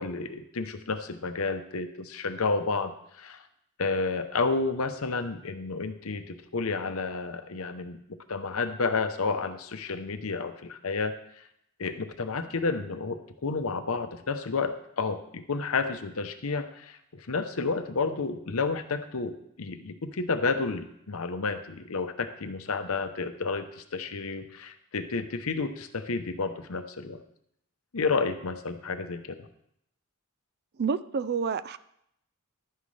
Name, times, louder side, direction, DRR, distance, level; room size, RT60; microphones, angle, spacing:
voice 1, 0.0-3.4 3.8-8.0 8.3-11.4 11.8-27.2 27.9-29.5, left 4 dB, 70° left, 9 dB, 0.8 m, -31 dB
voice 2, 30.8-31.8, right 5 dB, 45° right, 15 dB, 0.4 m, -28 dB
11.5 x 9.2 x 3.3 m, 0.74 s
head